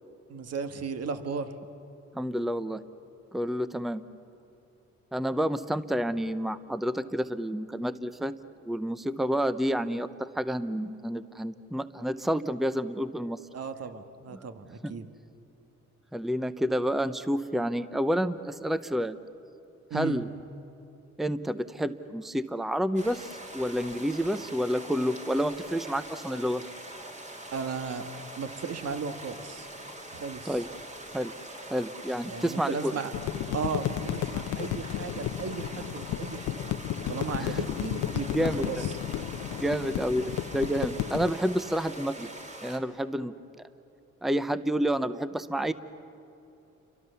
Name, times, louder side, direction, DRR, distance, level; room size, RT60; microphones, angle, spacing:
voice 1, 0.3-1.5 13.5-15.1 19.9-20.2 27.5-29.7 30.1-30.6 32.2-33.1 33.5-36.5 37.1-38.9, right 5 dB, 55° right, 8 dB, 1.7 m, -35 dB
voice 2, 2.1-2.8 3.3-4.0 5.1-8.4 8.7-13.4 14.3-14.5 14.8-14.9 16.1-19.2 19.9-20.3 21.2-26.6 30.4-30.7 31.1-31.3 31.7-32.9 37.4-37.6 38.3-38.8 39.5-42.3 42.6-43.7 44.2-45.7, equal, ahead, 13 dB, 0.7 m, -29 dB
sound 1, 23.0-42.8, right 1 dB, 25° right, 3.0 m, -43 dB
sound 2, 33.1-41.3, left 11 dB, 85° left, 0.8 m, -33 dB
29.5 x 24.0 x 6.9 m, 2.9 s
cardioid pair, 90°, 30 cm